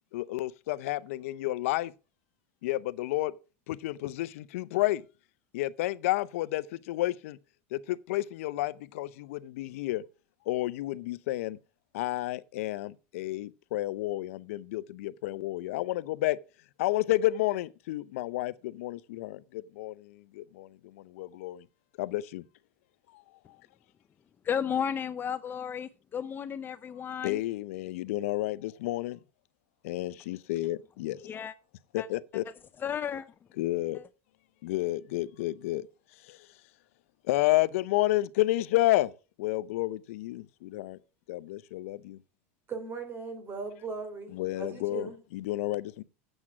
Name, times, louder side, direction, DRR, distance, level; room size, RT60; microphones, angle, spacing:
voice 1, 0.1-1.9 2.6-3.3 3.7-5.0 5.5-7.4 7.7-7.8 8.1-10.0 10.5-11.6 11.9-16.4 16.8-20.1 20.4-20.7 21.1-21.6 22.0-22.4 27.2-29.2 29.8-31.2 31.9-32.4 33.6-34.0 34.6-35.9 36.3-36.4 37.3-39.1 39.4-41.0 41.3-42.2 44.3-46.0, left 17 dB, 80° left, 0.5 m, -30 dB
voice 2, 24.4-27.4 31.2-31.5 32.0-32.1 32.8-33.3 33.9-34.0, left 8 dB, 25° left, 0.5 m, -33 dB
voice 3, 42.7-45.2, right 4 dB, 30° right, 3.1 m, -38 dB
8.0 x 7.4 x 5.9 m
supercardioid pair, 120°, 7 cm